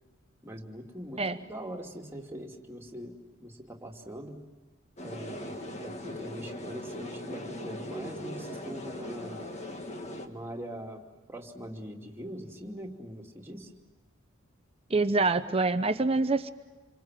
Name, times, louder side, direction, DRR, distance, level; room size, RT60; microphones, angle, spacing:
voice 1, 0.4-4.4 5.0-5.5 5.8-9.5 10.2-11.0 11.3-13.7, equal, 10° right, 0 dB, 2.6 m, -42 dB
sound 1, 5.0-10.3, left 1 dB, 30° left, 1.9 m, -39 dB
voice 2, 14.9-16.5, right 3 dB, 30° right, 10 dB, 0.8 m, -26 dB
28.0 x 25.5 x 7.5 m, 1.3 s
head